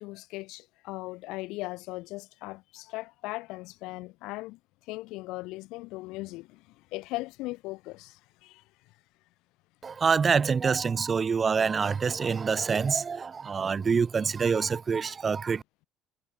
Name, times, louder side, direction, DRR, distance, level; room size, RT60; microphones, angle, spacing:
voice 1, 0.0-8.9, left 21 dB, 80° left, 3.2 m, -39 dB
voice 2, 9.8-15.6, right 5 dB, 30° right, 0.6 m, -26 dB
cardioid pair, 120°, 0 cm